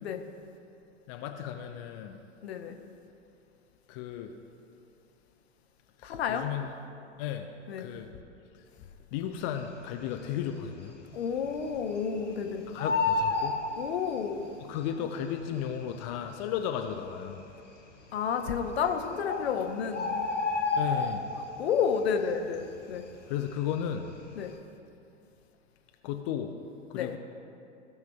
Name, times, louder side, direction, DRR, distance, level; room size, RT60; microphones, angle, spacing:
voice 1, 1.1-2.2 3.9-4.3 6.0-6.7 7.2-7.5 7.8-8.1 8.5-8.6 9.1-11.0 12.7-13.6 14.6-17.4 20.8-21.3 23.3-24.1 26.0-26.5 26.9-27.2, left 9 dB, 30° left, 4 dB, 0.4 m, -34 dB
voice 2, 2.4-2.8 6.0-6.4 7.7-7.9 11.1-12.6 13.8-14.4 18.1-20.2 21.6-23.0 24.4-24.5 26.9-27.2, left 7 dB, 60° left, 5 dB, 0.9 m, -30 dB
Bird, 9.9-10.5 10.8-10.9 11.1-12.3 12.6-14.4 15.3-15.4 16.0-16.1 16.3-16.4 17.1-17.5 18.5-18.6 18.9-19.0 19.3-21.6 21.9-22.2 22.5-23.9 24.2-24.5, left 4 dB, 85° left, 1.1 m, -30 dB
15.0 x 5.9 x 2.3 m, 2.6 s
figure-of-eight pair, 95°, 36 cm